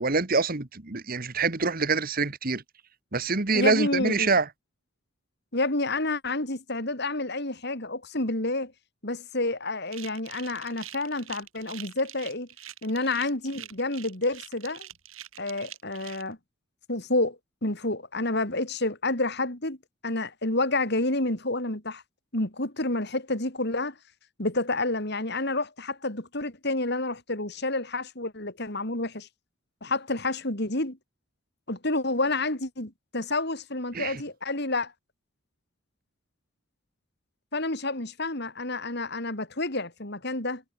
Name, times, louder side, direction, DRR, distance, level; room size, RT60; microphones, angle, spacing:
voice 1, 0.0-2.6 3.1-4.4 33.9-34.1, right 4 dB, 45° right, 1.5 m, -25 dB
voice 2, 3.5-4.4 5.5-8.7 9.0-12.5 12.8-14.9 15.4-16.4 16.9-19.8 20.0-22.0 22.3-24.0 24.4-29.3 29.8-31.0 31.7-34.9 37.5-40.6, left 2 dB, 50° left, 3.6 m, -29 dB
sound 1, 9.9-16.2, right 12 dB, 70° right, 5.9 m, -44 dB
head